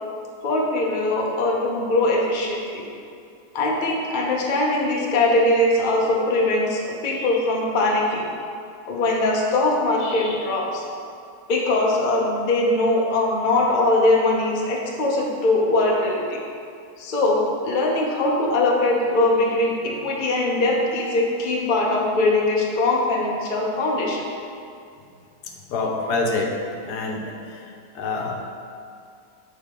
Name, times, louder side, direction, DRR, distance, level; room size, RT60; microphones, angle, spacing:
voice 1, 0.4-2.8 3.5-8.3 8.9-10.8 11.5-16.4 17.0-24.3, left 2 dB, 45° left, -2 dB, 0.7 m, -21 dB
voice 2, 25.7-26.5 26.8-27.3 27.9-28.4, left 3 dB, 85° left, 1 dB, 1.3 m, -25 dB
6.5 x 4.6 x 3.6 m, 2.4 s
omnidirectional pair, 1.7 m